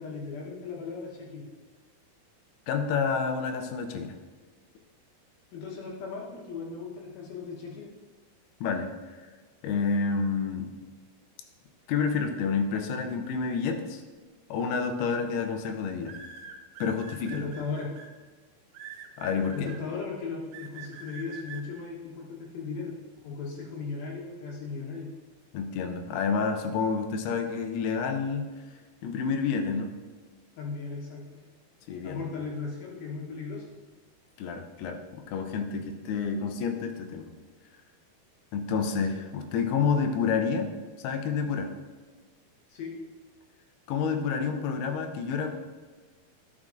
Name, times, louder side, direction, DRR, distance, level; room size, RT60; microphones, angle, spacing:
voice 1, 0.0-1.5 5.5-7.9 17.3-17.9 19.5-23.0 23.2-25.1 30.6-31.5 32.0-33.7 42.7-42.9, left 4 dB, 75° left, -2 dB, 3.0 m, -37 dB
voice 2, 2.7-4.1 8.6-8.9 9.6-10.7 11.9-14.0 14.5-16.1 16.8-17.5 19.2-19.7 25.5-28.5 29.0-29.9 31.9-32.2 34.4-37.3 38.5-40.7 41.0-41.7 43.9-45.6, left 5 dB, 90° left, 6 dB, 2.8 m, -29 dB
sound 1, 14.5-14.8 16.0-18.1 18.7-19.8 20.5-21.6, right 6 dB, 70° right, 2.3 m, -44 dB
11.0 x 6.2 x 3.8 m, 1.4 s
omnidirectional pair, 4.5 m